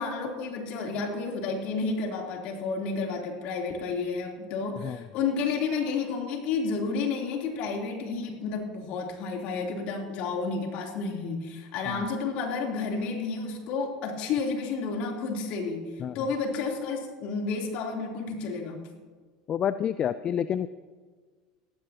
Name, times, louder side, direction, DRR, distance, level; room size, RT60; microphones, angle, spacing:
voice 1, 0.0-18.8, left 4 dB, 60° left, 1 dB, 3.3 m, -31 dB
voice 2, 19.5-20.7, left 9 dB, 40° left, 14 dB, 0.4 m, -28 dB
18.0 x 15.0 x 2.9 m, 1.5 s
hypercardioid pair, 85°, 2 cm